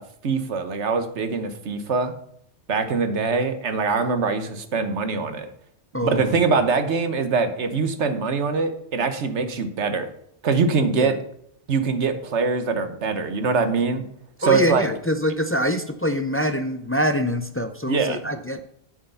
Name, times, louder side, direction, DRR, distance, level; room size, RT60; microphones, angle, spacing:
voice 1, 0.0-2.1 2.7-5.5 6.0-10.1 10.4-11.2 11.7-14.0 14.4-14.9 17.9-18.2, right 4 dB, 75° right, 8 dB, 1.4 m, -23 dB
voice 2, 5.9-6.4 11.0-11.1 14.4-18.7, equal, 20° left, 9 dB, 0.3 m, -25 dB
8.6 x 6.6 x 5.6 m, 0.71 s
omnidirectional pair, 1.2 m